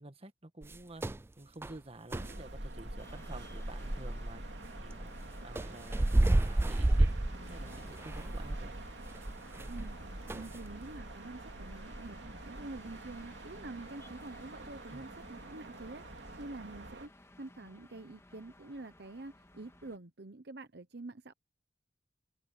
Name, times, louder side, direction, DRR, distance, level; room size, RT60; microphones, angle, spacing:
voice 1, 0.0-8.7 14.9-15.1, right 2 dB, 35° right, 1.7 m, -51 dB
sound 1, 0.6-1.2 1.6-1.8 2.1-2.4 3.8-4.0 5.6-10.0 10.3-10.6, right 1 dB, 15° right, 0.3 m, -30 dB
sound 2, 2.1-17.1, right 1 dB, 80° right, 2.8 m, -45 dB
sound 3, 3.0-20.0, left 1 dB, 15° left, 1.9 m, -57 dB
voice 2, 9.7-10.0 10.3-12.2 12.4-21.3, right 2 dB, 65° right, 1.0 m, -47 dB
open air
head